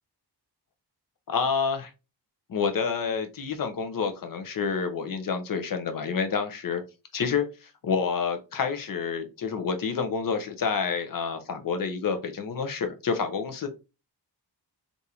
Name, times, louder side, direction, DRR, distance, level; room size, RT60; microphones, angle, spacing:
voice 1, 1.3-1.9 2.5-6.8 7.1-13.7, left 5 dB, 55° left, 0.7 m, -28 dB
3.5 x 2.6 x 2.7 m
wide cardioid pair, 155°, 41 cm